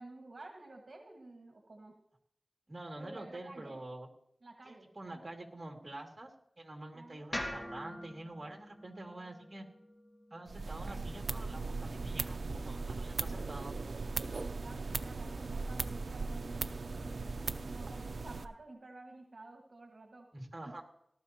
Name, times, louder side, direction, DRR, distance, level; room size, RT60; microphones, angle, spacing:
voice 1, 0.0-2.0 3.0-3.8 4.4-5.2 6.9-7.7 14.3-20.3 20.6-20.7, right 2 dB, 60° right, 1 dB, 1.7 m, -52 dB
voice 2, 2.7-4.1 4.7-9.7 10.3-13.8 20.3-20.8, right 1 dB, 40° right, 1 dB, 2.5 m, -47 dB
sound 1, 7.3-11.5, left 1 dB, 30° left, 2.1 m, -45 dB
sound 2, 10.5-18.4, right 3 dB, 80° right, 0.6 m, -38 dB
18.0 x 12.5 x 3.0 m, 0.72 s
wide cardioid pair, 50°, 0 cm